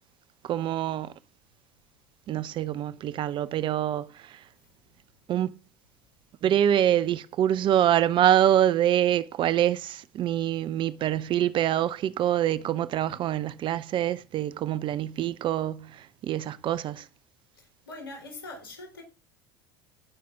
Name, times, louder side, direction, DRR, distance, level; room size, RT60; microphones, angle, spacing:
voice 1, 0.4-1.1 2.3-4.4 5.3-5.5 6.4-17.1, right 11 dB, 45° right, 0.8 m, -25 dB
voice 2, 17.5-19.0, left 2 dB, 85° left, 3.9 m, -42 dB
15.5 x 5.9 x 3.7 m
hypercardioid pair, 70°, 12 cm